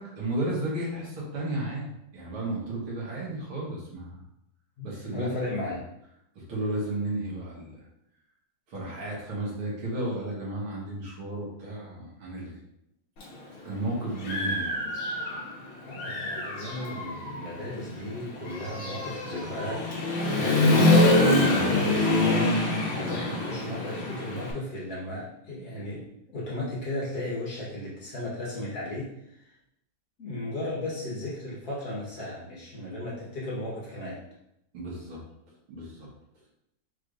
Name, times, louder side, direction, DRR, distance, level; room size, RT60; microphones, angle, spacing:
voice 1, 0.0-4.2 4.8-5.3 5.7-5.8 6.4-7.8 8.7-12.5 13.7-14.8 21.4-21.8 34.7-35.2 35.7-36.1, right 1 dB, 90° right, -5 dB, 2.3 m, -33 dB
voice 2, 4.8-5.9 15.9-19.8 20.3-29.1 30.2-34.2, left 1 dB, 50° left, -7 dB, 1.8 m, -35 dB
Human voice / Motorcycle, 13.2-13.3 13.8-15.6 15.9-24.5, left 2 dB, 75° left, 1.8 m, -25 dB
5.1 x 3.3 x 2.6 m, 0.79 s
omnidirectional pair, 2.2 m